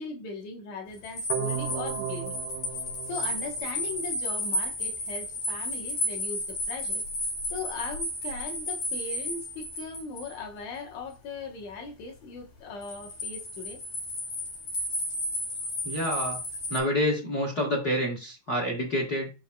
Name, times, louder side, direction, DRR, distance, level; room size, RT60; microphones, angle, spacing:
voice 1, 0.0-2.4 3.1-7.0 7.5-13.8, left 4 dB, 65° left, 2.3 m, -39 dB
sound 1, 1.0-10.3 12.8-16.8, left 1 dB, 90° left, 3.7 m, -33 dB
sound 2, 1.3-4.3, right 9 dB, 80° right, 1.6 m, -35 dB
voice 2, 15.8-16.4 16.7-19.3, equal, 45° left, 1.3 m, -28 dB
7.0 x 6.0 x 2.3 m
omnidirectional pair, 3.7 m